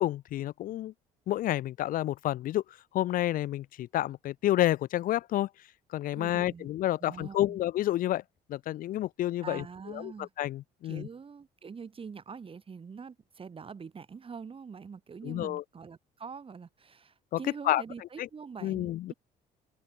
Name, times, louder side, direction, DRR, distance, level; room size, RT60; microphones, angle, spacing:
voice 1, 0.0-0.9 1.3-2.6 2.9-5.5 5.9-8.2 8.5-11.1 15.2-15.6 17.3-17.4 17.6-17.8 18.2-18.3 18.6-19.1, left 14 dB, 55° left, 0.4 m, -29 dB
voice 2, 6.1-6.7 7.0-7.6 9.4-10.3 10.8-19.1, right 5 dB, 30° right, 7.1 m, -44 dB
open air
cardioid pair, 110°, 17 cm